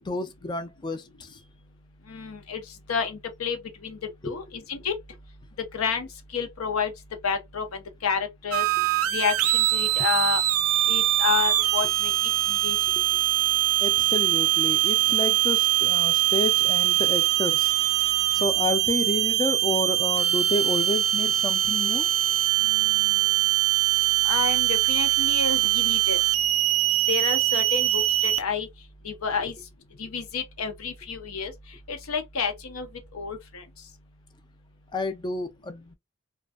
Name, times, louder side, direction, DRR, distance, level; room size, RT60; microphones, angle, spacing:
voice 1, 0.0-1.4 4.2-4.4 8.8-8.9 13.8-17.7 18.3-22.1 34.9-35.9, left 3 dB, 20° left, 0.3 m, -30 dB
voice 2, 2.1-2.6 2.9-4.0 4.2-4.9 5.7-6.9 7.2-8.6 9.1-10.4 10.9-12.1 12.5-12.8 22.6-23.2 24.2-26.2 27.1-28.7 29.0-29.5 30.0-31.5 31.9-32.9 33.1-33.6, left 6 dB, 90° left, 0.7 m, -30 dB
sound 1, 8.5-28.4, right 14 dB, 75° right, 0.4 m, -23 dB
2.5 x 2.2 x 2.3 m
head